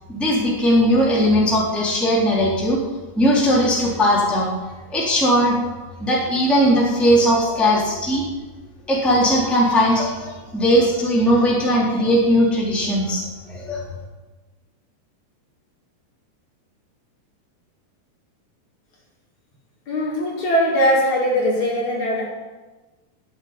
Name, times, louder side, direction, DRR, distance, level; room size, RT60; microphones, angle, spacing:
voice 1, 0.1-2.8 3.1-4.5 4.9-5.6 6.0-8.3 8.9-13.8, equal, ahead, -4 dB, 3.1 m, -18 dB
voice 2, 19.9-22.3, equal, 50° left, -4 dB, 3.6 m, -20 dB
13.5 x 8.7 x 9.7 m, 1.2 s
omnidirectional pair, 4.7 m